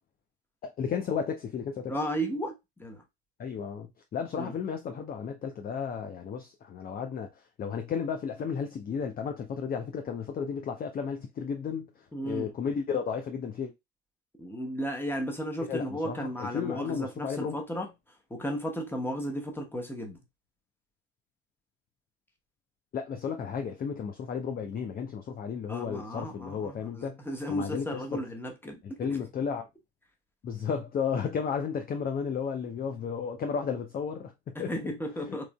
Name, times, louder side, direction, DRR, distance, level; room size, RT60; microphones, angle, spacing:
voice 1, 0.6-1.9 3.4-7.3 7.6-11.9 12.2-13.7 15.7-17.6 22.9-27.2 27.5-28.0 29.0-29.7 30.4-34.7 35.3-35.5, left 6 dB, 30° left, 0.5 m, -33 dB
voice 2, 1.9-3.0 4.4-4.6 12.1-12.5 14.4-17.9 18.3-20.2 25.7-29.2 34.5-35.5, equal, 5° left, 1.0 m, -34 dB
3.7 x 3.1 x 2.2 m
figure-of-eight pair, 55°, 33 cm